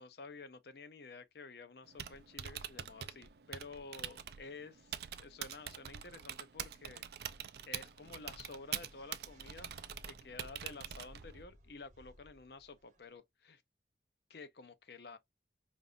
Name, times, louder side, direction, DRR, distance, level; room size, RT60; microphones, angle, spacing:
voice 1, 0.0-7.3 7.7-9.7 10.0-13.6 14.3-15.2, left 3 dB, 65° left, 0.6 m, -51 dB
Typing, 1.8-11.4, right 10 dB, 60° right, 0.4 m, -45 dB
sound 1, 4.8-13.1, equal, 45° right, 0.9 m, -60 dB
5.2 x 2.5 x 2.5 m
head